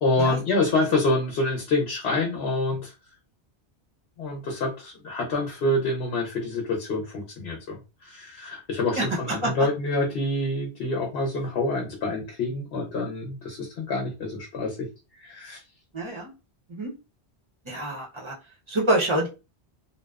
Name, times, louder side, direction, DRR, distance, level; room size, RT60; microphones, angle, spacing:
voice 1, 0.0-2.9 4.2-7.8 8.0-14.8 15.2-15.6, left 2 dB, 70° left, 1 dB, 0.9 m, -27 dB
voice 2, 15.9-16.3 16.7-16.9 17.7-18.3 18.7-19.3, right 1 dB, 35° right, -2 dB, 0.6 m, -26 dB
2.6 x 2.0 x 2.3 m, 0.29 s
omnidirectional pair, 1.1 m